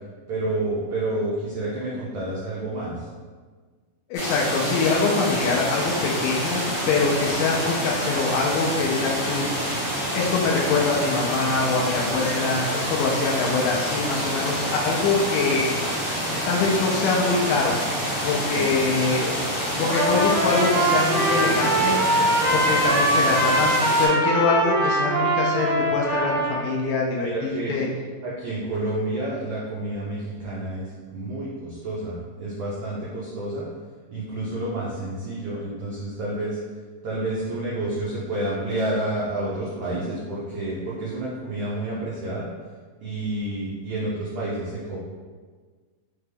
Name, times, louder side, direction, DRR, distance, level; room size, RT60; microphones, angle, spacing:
voice 1, 0.3-3.1 18.5-18.7 27.2-27.8 28.2-33.6 34.1-36.6 37.0-42.5 43.0-45.0, right 1 dB, 90° right, -7 dB, 1.3 m, -29 dB
voice 2, 4.1-9.8 10.1-15.7 16.5-17.8 18.2-19.4 19.8-22.0 22.5-27.9, left 4 dB, 90° left, -2 dB, 2.2 m, -24 dB
sound 1, 4.1-24.1, equal, 55° left, 0.9 m, -27 dB
Trumpet, 19.9-26.6, right 1 dB, 70° right, 0.6 m, -22 dB
5.8 x 2.2 x 3.3 m, 1.5 s
omnidirectional pair, 3.7 m